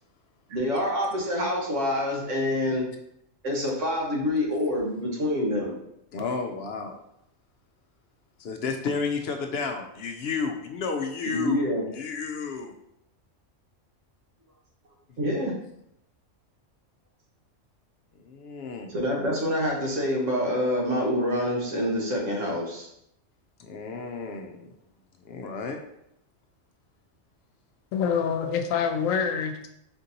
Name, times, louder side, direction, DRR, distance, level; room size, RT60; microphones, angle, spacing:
voice 1, 0.5-2.8 3.4-5.8 11.2-11.8 15.2-15.5 18.9-22.9, left 1 dB, 70° right, -1 dB, 1.4 m, -26 dB
voice 2, 6.1-7.0 8.4-11.6 11.9-12.8 15.2-15.3 18.2-18.9 23.6-24.7 25.2-25.8, left 4 dB, 65° left, 4 dB, 0.7 m, -32 dB
voice 3, 27.9-29.7, left 6 dB, 90° left, 5 dB, 1.0 m, -26 dB
4.4 x 3.9 x 2.8 m, 0.77 s
omnidirectional pair, 1.3 m